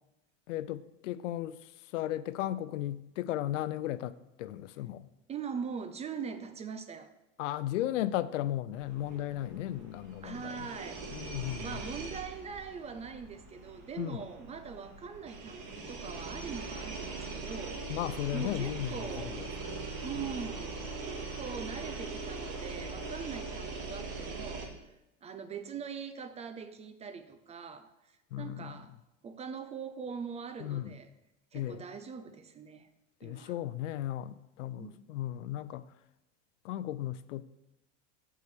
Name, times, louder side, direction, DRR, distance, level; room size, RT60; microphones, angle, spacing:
voice 1, 0.5-1.6 1.9-5.1 7.4-10.7 11.1-11.8 14.0-14.2 17.9-19.9 28.3-28.8 30.6-30.9 31.5-31.8 33.2-35.8 36.6-37.4, left 13 dB, 80° left, 0.6 m, -35 dB
voice 2, 5.3-7.1 10.2-11.0 11.6-17.8 18.3-19.4 20.0-24.9 25.2-27.9 28.4-28.9 29.2-31.1 31.5-32.9 33.2-33.5 34.7-35.0, right 6 dB, 20° right, 0.4 m, -42 dB
sound 1, 8.7-24.7, right 3 dB, 60° right, 2.0 m, -41 dB
6.7 x 5.0 x 6.6 m
supercardioid pair, 120°, 37 cm